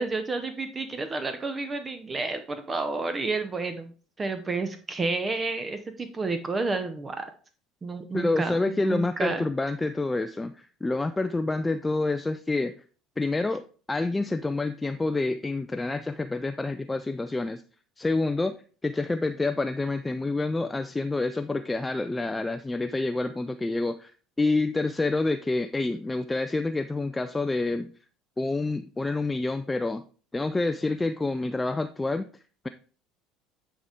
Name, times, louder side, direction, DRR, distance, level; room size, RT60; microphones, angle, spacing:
voice 1, 0.0-3.9 4.2-7.3 7.8-9.5, right 3 dB, 25° right, 8 dB, 0.7 m, -30 dB
voice 2, 8.1-12.7 13.2-17.6 18.0-18.5 18.8-24.1 24.4-27.9 28.4-30.0 30.3-32.3, left 2 dB, 15° left, 10 dB, 0.4 m, -28 dB
9.7 x 3.7 x 3.5 m, 0.40 s
figure-of-eight pair, 60°, 0 cm